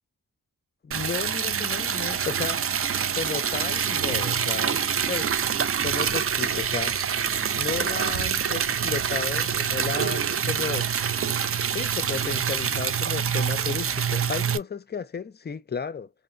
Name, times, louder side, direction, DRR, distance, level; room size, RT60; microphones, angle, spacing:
voice 1, 0.8-2.6 3.1-7.0 7.6-10.9 11.7-16.1, left 6 dB, 30° left, 0.4 m, -33 dB
Liquid, 0.9-14.6, right 7 dB, 40° right, 0.4 m, -26 dB
2.8 x 2.2 x 2.5 m
cardioid pair, 50°, 36 cm